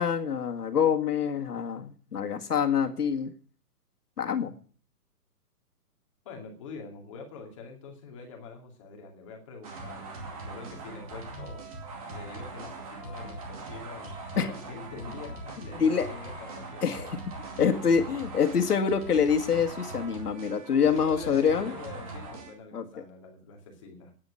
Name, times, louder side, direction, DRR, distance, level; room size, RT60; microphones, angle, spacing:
voice 1, 0.0-3.3 4.2-4.5 14.4-14.5 15.8-16.1 16.8-17.1 17.6-21.7 22.7-22.9, left 7 dB, 75° left, 6 dB, 2.1 m, -26 dB
voice 2, 6.2-11.7 12.1-17.2 20.9-24.1, left 4 dB, 20° left, 2 dB, 2.3 m, -45 dB
sound 1, 9.6-22.5, right 2 dB, 25° right, 2.4 m, -41 dB
10.0 x 9.7 x 9.7 m, 0.44 s
hypercardioid pair, 175°, 46 cm